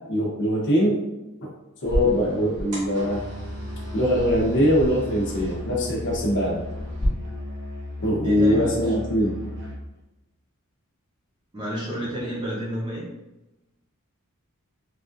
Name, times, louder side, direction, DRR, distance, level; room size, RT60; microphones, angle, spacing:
voice 1, 0.1-1.0 1.4-1.5 1.8-3.2 3.9-6.6 8.0-9.3, equal, 55° left, -3 dB, 0.8 m, -22 dB
sound 1, 1.8-7.1, equal, 90° right, 1.4 m, -33 dB
Musical instrument, 3.0-9.9, left 1 dB, 50° right, 0.6 m, -35 dB
voice 2, 8.2-9.0 11.5-13.0, equal, 20° right, -6 dB, 0.8 m, -30 dB
3.3 x 2.5 x 2.5 m, 0.98 s
head